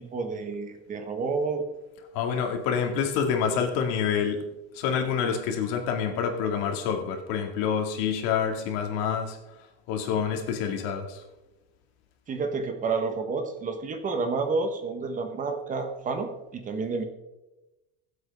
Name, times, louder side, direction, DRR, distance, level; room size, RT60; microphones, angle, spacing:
voice 1, 0.0-1.7 12.3-17.0, right 4 dB, 25° right, 7 dB, 1.3 m, -30 dB
voice 2, 2.1-4.4 4.7-9.4 9.9-11.2, left 7 dB, 70° left, 4 dB, 2.3 m, -27 dB
21.0 x 8.0 x 3.6 m, 1.0 s
cardioid pair, 155°, 31 cm